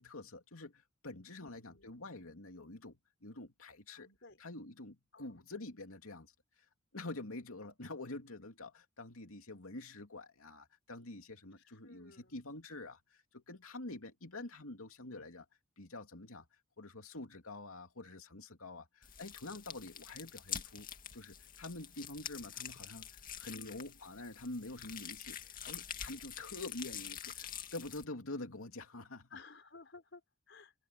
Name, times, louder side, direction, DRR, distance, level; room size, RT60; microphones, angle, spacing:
voice 1, 0.0-4.1 4.4-6.3 6.9-15.5 15.8-16.5 16.8-29.4, left 2 dB, 90° left, 2.8 m, -47 dB
voice 2, 1.4-2.1 3.9-4.4 5.1-5.4 11.6-12.3 23.5-23.9 29.3-30.7, left 4 dB, 60° left, 5.3 m, -57 dB
sound 1, 19.0-28.0, left 9 dB, 40° left, 2.3 m, -46 dB
head